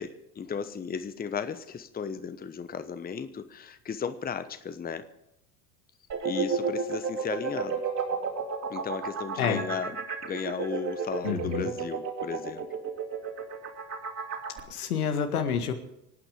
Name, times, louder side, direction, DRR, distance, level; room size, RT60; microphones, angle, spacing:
voice 1, 0.0-5.0 6.2-7.8 8.7-10.0 10.2-12.7, left 6 dB, 20° left, 11 dB, 1.0 m, -35 dB
sound 1, 6.1-14.6, right 5 dB, 35° right, 3.2 m, -32 dB
voice 2, 11.2-11.7 14.7-15.7, left 7 dB, 80° left, 6 dB, 2.0 m, -28 dB
25.5 x 9.0 x 5.1 m, 0.85 s
hypercardioid pair, 75°, 44 cm